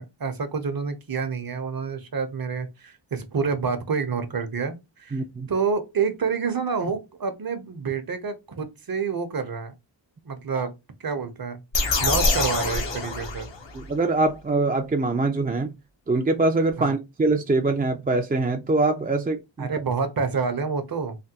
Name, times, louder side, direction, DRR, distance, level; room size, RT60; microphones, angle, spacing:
voice 1, 0.0-5.2 5.5-9.7 10.2-10.7 11.0-11.6 12.0-13.5 16.8-16.9 19.6-21.2, right 5 dB, 55° right, 0.7 m, -28 dB
voice 2, 5.1-5.5 10.6-10.7 13.7-15.7 16.1-19.7, right 2 dB, 20° right, 0.3 m, -23 dB
sound 1, 11.7-13.9, left 3 dB, 75° left, 0.8 m, -25 dB
3.3 x 2.2 x 2.8 m
wide cardioid pair, 55°, 44 cm